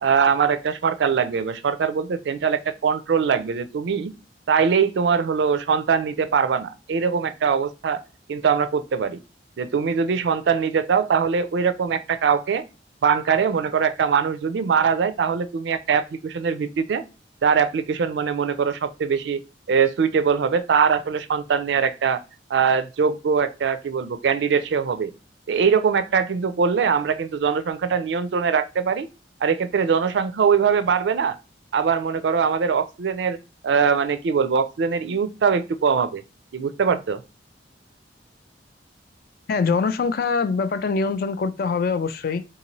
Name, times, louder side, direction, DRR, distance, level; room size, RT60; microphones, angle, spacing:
voice 1, 0.0-4.1 4.5-8.0 8.3-9.2 9.6-12.6 13.0-17.0 17.4-19.4 19.7-22.2 22.5-25.1 25.5-29.1 29.4-31.4 31.7-33.4 33.6-36.2 36.5-37.2, right 6 dB, 65° right, 0.4 m, -22 dB
voice 2, 39.5-42.4, left 5 dB, 55° left, 0.3 m, -23 dB
3.8 x 2.6 x 2.9 m
head